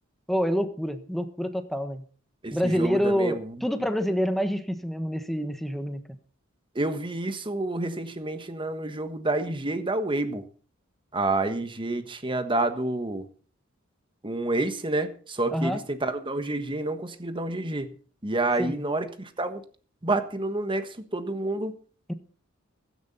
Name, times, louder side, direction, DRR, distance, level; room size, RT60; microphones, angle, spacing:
voice 1, 0.3-2.0 2.5-6.2 15.5-15.8 18.6-18.8 22.1-22.2, equal, ahead, 8 dB, 1.3 m, -27 dB
voice 2, 2.4-3.5 6.7-10.4 11.1-13.2 14.2-17.9 18.2-19.6 20.0-21.7, right 2 dB, 25° right, 9 dB, 1.4 m, -29 dB
16.0 x 12.5 x 4.2 m, 0.41 s
head